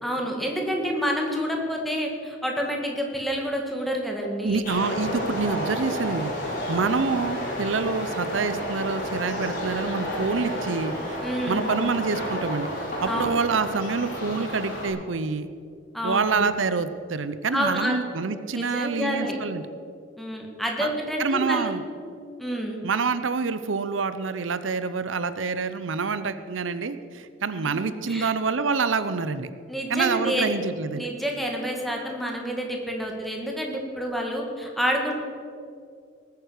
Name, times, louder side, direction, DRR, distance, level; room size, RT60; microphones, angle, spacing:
voice 1, 0.0-4.6 11.2-11.7 13.1-13.3 15.9-16.5 17.5-18.0 18.5-19.4 20.2-21.7 22.4-22.9 27.7-28.3 29.7-30.6 31.0-35.1, equal, ahead, 0 dB, 2.2 m, -28 dB
voice 2, 4.4-11.2 11.5-15.5 16.0-19.6 20.8-20.9 21.2-21.8 22.8-29.5 29.9-31.1, right 4 dB, 85° right, 12 dB, 0.7 m, -27 dB
sound 1, 4.6-14.9, equal, 45° left, 4.9 m, -31 dB
19.5 x 9.6 x 6.5 m, 2.4 s
head